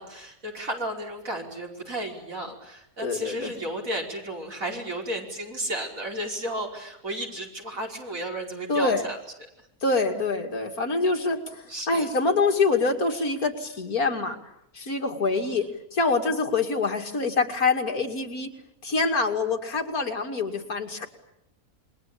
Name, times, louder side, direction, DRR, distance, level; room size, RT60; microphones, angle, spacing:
voice 1, 0.0-9.2 11.7-12.1 15.2-15.6, right 1 dB, 60° right, 1 dB, 5.6 m, -33 dB
voice 2, 3.0-3.5 8.7-9.0 9.8-14.4 14.7-15.7 15.9-18.5 18.8-21.1, left 3 dB, 65° left, 4 dB, 3.0 m, -25 dB
28.5 x 22.5 x 8.8 m, 0.77 s
omnidirectional pair, 1.6 m